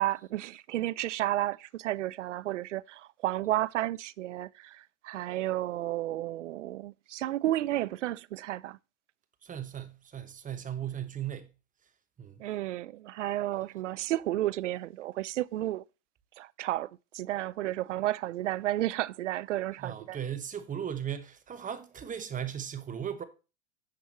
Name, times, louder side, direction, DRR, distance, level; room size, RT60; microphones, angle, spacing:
voice 1, 0.0-8.8 12.4-15.8 16.4-20.2, right 14 dB, 85° right, 0.6 m, -32 dB
voice 2, 9.4-11.5 12.2-12.4 19.8-23.2, right 9 dB, 20° right, 1.2 m, -37 dB
10.5 x 7.0 x 3.0 m
hypercardioid pair, 115°, 35 cm